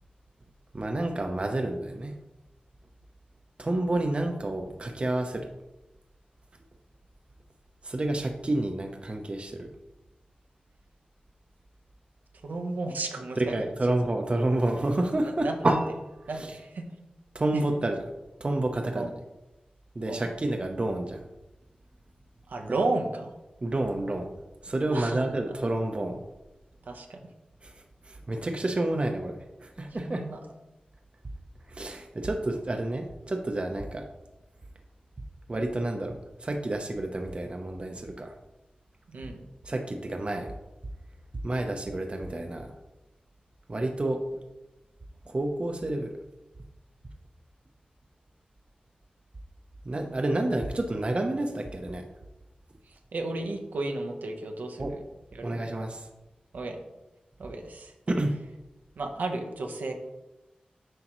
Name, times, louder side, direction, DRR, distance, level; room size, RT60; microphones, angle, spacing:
voice 1, 0.7-2.2 3.6-5.5 7.8-9.7 13.4-15.9 16.2-16.6 17.3-18.1 18.4-19.1 19.9-21.2 22.7-22.8 23.6-24.3 24.6-26.2 27.6-30.3 31.7-34.1 35.5-38.4 39.6-40.5 41.4-42.7 43.7-44.2 45.3-46.2 49.8-52.1 54.8-55.0 55.4-56.1 58.1-58.4, right 1 dB, 40° right, 4 dB, 0.6 m, -29 dB
voice 2, 12.4-13.7 15.4-15.6 16.3-16.8 18.9-19.1 20.1-20.3 22.5-23.3 24.9-25.2 26.9-27.2 30.0-30.4 39.1-39.4 53.1-55.0 55.3-55.6 56.5-56.8 57.4-57.9 59.0-59.9, right 2 dB, 90° right, 4 dB, 0.8 m, -33 dB
7.9 x 5.0 x 3.0 m, 1.0 s
cardioid pair, 55°, 3 cm